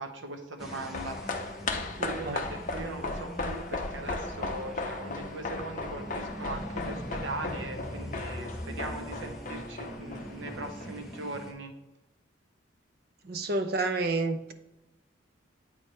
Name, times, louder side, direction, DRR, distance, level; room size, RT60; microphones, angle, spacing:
voice 1, 0.0-11.7, right 2 dB, 70° right, 5 dB, 0.9 m, -40 dB
sound 1, 0.6-11.2 11.5-11.6, left 3 dB, 40° left, 0.6 m, -37 dB
sound 2, 0.6-11.5, equal, ahead, 0.6 m, -42 dB
voice 2, 13.2-14.5, right 3 dB, 50° right, 8 dB, 0.5 m, -29 dB
8.1 x 4.5 x 3.1 m, 0.93 s
head